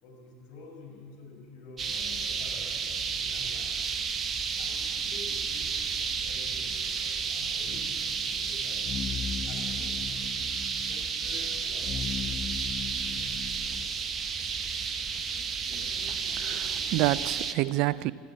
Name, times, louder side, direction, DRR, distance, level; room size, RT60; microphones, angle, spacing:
voice 1, 0.0-3.7 4.6-5.7 6.2-8.8 9.5-10.1 10.8-11.9, left 3 dB, 55° left, 6.3 m, -49 dB
sound 1, 1.8-17.5, right 6 dB, 30° right, 1.2 m, -32 dB
sound 2, 7.7-13.9, left 7 dB, 30° left, 0.6 m, -38 dB
voice 2, 15.7-18.1, right 17 dB, 55° right, 0.5 m, -29 dB
22.5 x 14.0 x 8.8 m
figure-of-eight pair, 70°, 0 cm